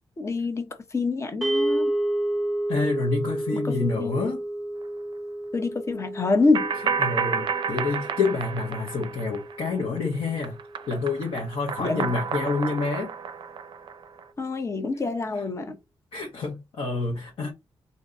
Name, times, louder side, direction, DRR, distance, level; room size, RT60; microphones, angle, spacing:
voice 1, 0.2-1.9 3.6-4.2 5.5-6.7 11.8-12.1 14.4-15.8, left 3 dB, 30° left, 0.8 m, -26 dB
sound 1, 1.4-11.7, right 1 dB, ahead, 0.7 m, -31 dB
voice 2, 2.7-4.4 7.0-10.6 10.9-13.1 16.1-17.5, left 4 dB, 75° left, 1.2 m, -28 dB
sound 2, 6.5-10.0 10.3-14.2, right 6 dB, 60° right, 0.4 m, -31 dB
3.6 x 2.6 x 2.6 m
cardioid pair, 110°, 9 cm